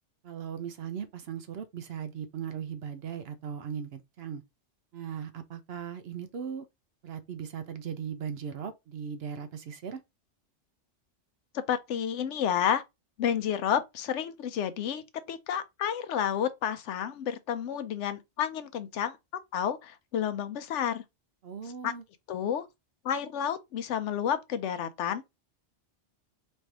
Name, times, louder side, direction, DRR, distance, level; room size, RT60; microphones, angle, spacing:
voice 1, 0.2-4.4 4.9-6.7 7.0-10.0 21.4-22.0, right 7 dB, 65° right, 0.8 m, -38 dB
voice 2, 11.5-12.8 13.2-19.2 19.5-21.0 21.8-21.9 22.3-22.7 23.0-25.2, left 9 dB, 75° left, 0.9 m, -30 dB
3.2 x 2.6 x 4.5 m
omnidirectional pair, 1.2 m